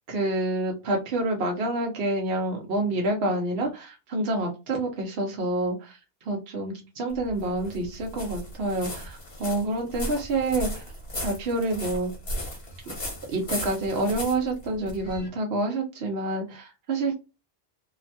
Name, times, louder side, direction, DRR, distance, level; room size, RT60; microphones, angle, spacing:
voice 1, 0.1-6.0 6.3-10.8 11.2-12.1 13.3-17.2, right 2 dB, 70° right, 1 dB, 0.9 m, -28 dB
sound 1, 7.1-15.3, left 1 dB, 65° left, 1.3 m, -36 dB
2.9 x 2.1 x 2.7 m, 0.27 s
omnidirectional pair, 1.1 m